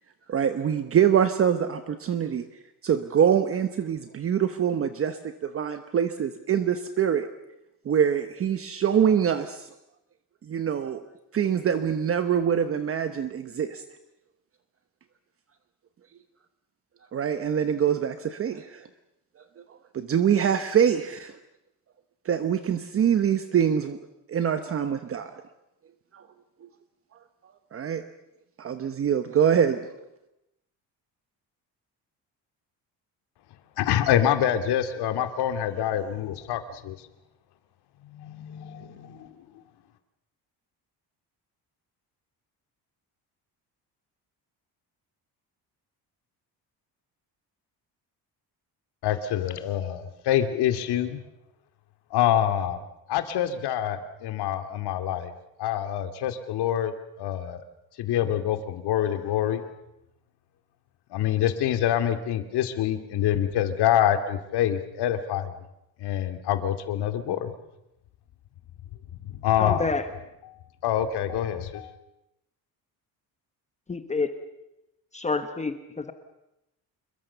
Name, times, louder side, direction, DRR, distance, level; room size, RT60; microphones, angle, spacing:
voice 1, 0.3-2.5 2.8-7.3 7.8-9.7 10.4-11.0 11.3-13.8 17.1-18.9 19.7-21.4 22.2-24.0 24.3-25.3 26.1-26.3 26.6-26.7 27.7-28.0 28.6-30.0, right 8 dB, 35° right, 10 dB, 1.1 m, -24 dB
voice 2, 33.8-37.0 38.1-39.3 49.0-51.2 52.1-52.8 53.1-55.3 55.6-57.6 58.0-59.7 61.1-65.6 66.0-67.5 69.1-69.9 70.8-71.9, left 10 dB, 80° left, 9 dB, 2.4 m, -26 dB
voice 3, 69.6-70.1 73.9-74.3 75.1-76.1, left 4 dB, 20° left, 8 dB, 1.2 m, -28 dB
27.0 x 22.5 x 6.9 m, 0.88 s
cardioid pair, 170°, 39 cm